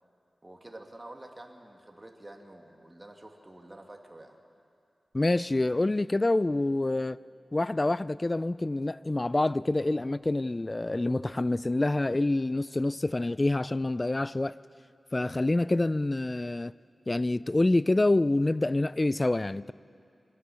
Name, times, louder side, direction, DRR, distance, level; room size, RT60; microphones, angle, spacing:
voice 1, 0.4-4.4, right 1 dB, 25° right, 2.1 m, -48 dB
voice 2, 5.1-7.2 7.5-14.6 15.1-16.7 17.1-19.7, left 2 dB, 30° left, 0.4 m, -27 dB
24.5 x 17.0 x 7.0 m
cardioid pair, 50°, 0 cm